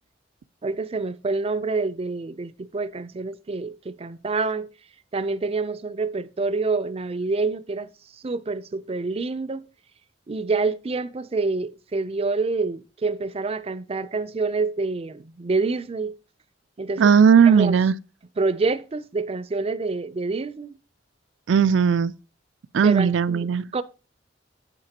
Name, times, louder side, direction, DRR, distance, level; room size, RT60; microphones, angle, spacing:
voice 1, 0.6-4.7 5.1-7.9 8.2-9.7 10.3-16.1 16.8-17.2 17.5-17.7 18.4-20.8 22.8-23.5 23.7-23.8, right 3 dB, 35° right, 0.5 m, -27 dB
voice 2, 17.0-17.9 21.5-22.1 22.7-23.6, right 6 dB, 90° right, 0.4 m, -17 dB
8.8 x 8.3 x 2.9 m
head